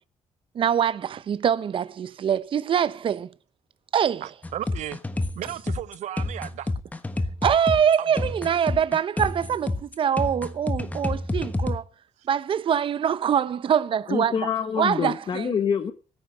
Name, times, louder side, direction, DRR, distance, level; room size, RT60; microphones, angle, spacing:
voice 1, 0.5-3.3 3.9-4.3 7.4-11.8 12.3-14.4 14.8-15.6, right 8 dB, 45° right, 0.7 m, -24 dB
voice 2, 4.2-5.0 5.3-6.7 8.1-8.3, right 12 dB, 80° right, 0.9 m, -35 dB
sound 1, 4.4-11.8, left 2 dB, 15° left, 1.2 m, -29 dB
voice 3, 14.1-15.9, left 7 dB, 40° left, 1.1 m, -26 dB
15.5 x 9.1 x 6.9 m
cardioid pair, 140°, 12 cm